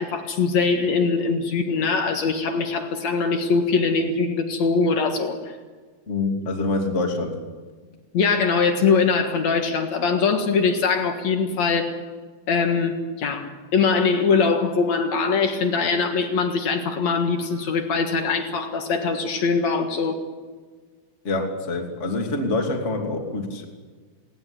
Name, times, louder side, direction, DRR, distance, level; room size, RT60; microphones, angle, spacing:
voice 1, 0.0-5.6 8.1-11.9 12.5-20.2, left 5 dB, 65° left, 5 dB, 1.8 m, -22 dB
voice 2, 6.1-7.3 21.2-23.7, left 2 dB, 25° left, 2 dB, 1.6 m, -26 dB
19.5 x 18.5 x 9.8 m, 1.4 s
omnidirectional pair, 5.7 m